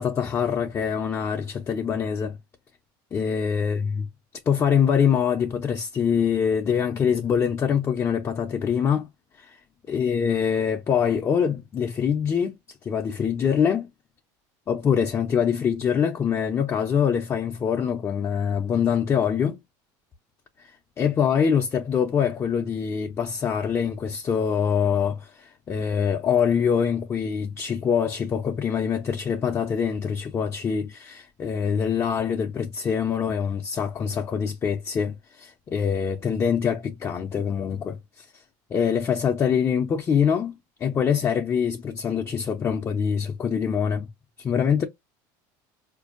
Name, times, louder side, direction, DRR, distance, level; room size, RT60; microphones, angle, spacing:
voice 1, 0.0-2.4 3.1-4.1 4.5-9.1 9.4-9.6 9.9-12.6 12.8-13.9 14.7-19.6 20.6-20.7 21.0-38.3 38.7-44.1 44.4-44.9, left 7 dB, 25° left, 0.5 m, -24 dB
4.4 x 2.5 x 2.4 m
supercardioid pair, 120°, 10 cm